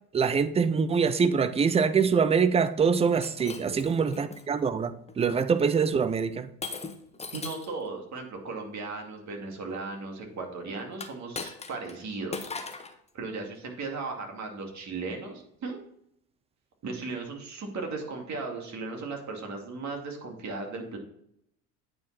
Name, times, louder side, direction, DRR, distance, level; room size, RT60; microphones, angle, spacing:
voice 1, 0.1-6.5, right 6 dB, 15° right, 12 dB, 0.4 m, -24 dB
Shatter, 3.1-4.4 5.1-5.4 6.6-7.8 10.9-12.0 12.3-13.0, left 4 dB, 15° left, 0.9 m, -39 dB
voice 2, 7.3-12.5 13.1-15.8 16.8-21.0, right 3 dB, 35° right, 2 dB, 2.5 m, -36 dB
9.0 x 5.3 x 4.2 m, 0.72 s
hypercardioid pair, 70°, 48 cm